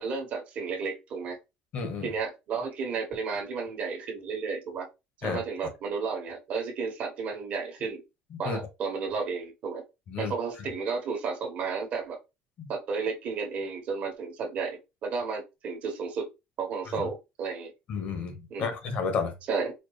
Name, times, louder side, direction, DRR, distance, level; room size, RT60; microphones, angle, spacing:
voice 1, 0.0-1.4 2.0-4.9 5.2-8.0 8.4-9.8 10.2-12.2 12.7-16.3 16.6-17.7 18.5-18.7 19.5-19.7, right 5 dB, 50° right, 1.3 m, -32 dB
voice 2, 1.7-2.1 5.2-5.4 8.3-8.6 10.1-10.3 16.9-17.1 17.9-19.4, left 5 dB, 45° left, 1.1 m, -31 dB
4.4 x 2.2 x 3.2 m
cardioid pair, 140°, 3 cm